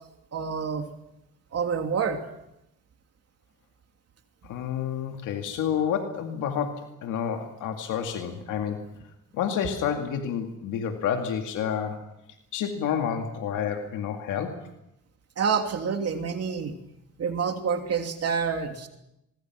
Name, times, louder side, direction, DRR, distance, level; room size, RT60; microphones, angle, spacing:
voice 1, 0.3-0.9 1.5-2.2 15.4-16.7 17.2-18.9, right 6 dB, 55° right, 4 dB, 2.9 m, -27 dB
voice 2, 4.4-8.9 9.3-12.0 12.5-14.6, left 8 dB, 90° left, 4 dB, 2.3 m, -29 dB
25.5 x 22.5 x 6.1 m, 0.85 s
cardioid pair, 90°, 30 cm